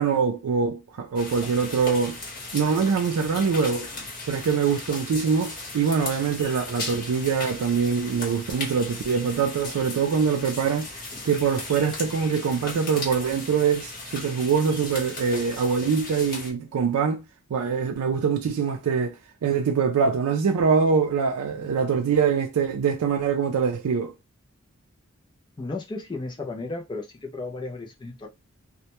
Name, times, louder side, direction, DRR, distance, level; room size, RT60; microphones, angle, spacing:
voice 1, 0.0-2.2 2.5-3.9 4.3-10.9 11.2-17.2 17.5-19.1 19.4-24.1, right 6 dB, 85° right, 0.4 m, -24 dB
sound 1, 1.1-16.5, left 2 dB, 40° left, 0.9 m, -37 dB
voice 2, 25.6-28.3, left 3 dB, 20° left, 0.3 m, -34 dB
2.1 x 2.1 x 2.8 m
head